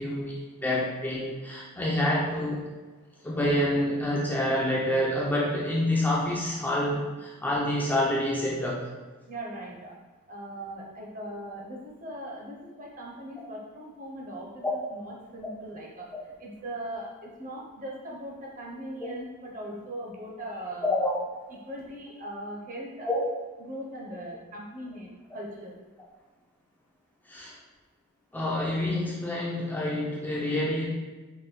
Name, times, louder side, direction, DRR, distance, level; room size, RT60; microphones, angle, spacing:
voice 1, 0.0-2.6 3.2-8.9 13.4-13.5 14.6-14.7 19.0-19.1 20.8-21.1 23.0-23.2 27.3-27.6 28.3-30.9, left 1 dB, 10° left, -5 dB, 0.4 m, -27 dB
voice 2, 9.3-9.9 10.3-16.1 16.4-20.9 21.5-23.1 23.6-25.8, right 1 dB, 35° right, -2 dB, 0.7 m, -40 dB
4.4 x 2.2 x 3.2 m, 1.3 s
head